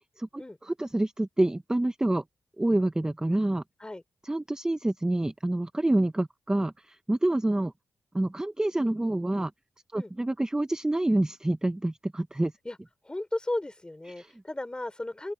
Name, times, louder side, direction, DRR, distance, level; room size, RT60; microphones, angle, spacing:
voice 1, 0.2-2.2 2.6-3.6 4.2-7.7 8.1-9.5 9.9-12.5 14.2-14.3, right 1 dB, 15° right, 0.6 m, -27 dB
voice 2, 13.0-15.3, left 1 dB, 15° left, 5.3 m, -34 dB
open air
cardioid pair, 90°, 5 cm